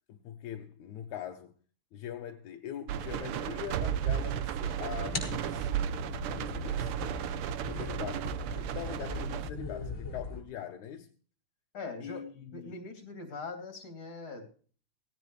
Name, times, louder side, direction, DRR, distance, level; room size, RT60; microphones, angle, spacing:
voice 1, 0.1-1.5 1.9-5.7 6.5-6.9 7.7-11.1 12.0-12.8, left 10 dB, 80° left, 2.3 m, -42 dB
sound 1, 2.9-9.5, right 10 dB, 75° right, 1.3 m, -34 dB
sound 2, 4.7-10.4, left 3 dB, 25° left, 4.8 m, -40 dB
voice 2, 11.7-12.2 12.5-14.5, left 3 dB, 45° left, 3.9 m, -41 dB
17.5 x 17.5 x 3.2 m
omnidirectional pair, 3.4 m